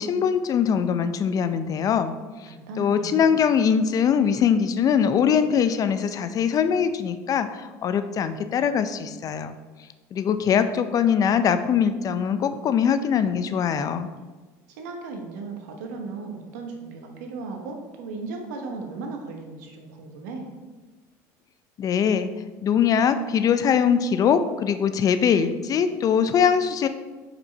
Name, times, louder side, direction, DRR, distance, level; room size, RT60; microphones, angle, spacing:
voice 1, 0.0-2.1 2.4-9.6 10.1-14.1 21.8-22.3 22.6-26.9, left 7 dB, 40° left, 11 dB, 0.4 m, -22 dB
voice 2, 2.5-3.3 14.8-20.5, right 3 dB, 85° right, 3 dB, 1.0 m, -36 dB
5.3 x 4.5 x 4.1 m, 1.3 s
supercardioid pair, 95°, 9 cm